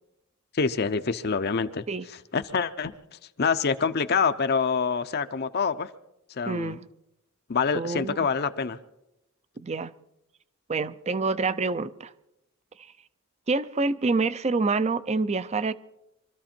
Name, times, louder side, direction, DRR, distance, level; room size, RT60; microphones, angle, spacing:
voice 1, 0.5-1.8 2.3-2.9 3.4-5.9 6.4-6.8 7.5-8.8, left 5 dB, 45° left, 0.6 m, -26 dB
voice 2, 6.5-6.9 7.7-8.2 9.6-9.9 10.7-12.1 13.5-15.7, right 3 dB, 30° right, 0.5 m, -27 dB
24.0 x 13.5 x 4.4 m
head